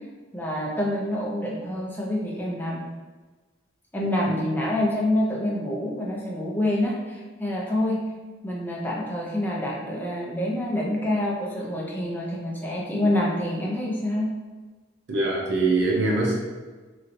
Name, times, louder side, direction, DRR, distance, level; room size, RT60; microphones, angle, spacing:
voice 1, 0.3-2.8 3.9-8.0 8.4-14.3, left 1 dB, 10° left, -4 dB, 0.5 m, -27 dB
voice 2, 15.1-16.3, right 2 dB, 65° right, -3 dB, 0.8 m, -22 dB
3.1 x 2.7 x 2.6 m, 1.3 s
head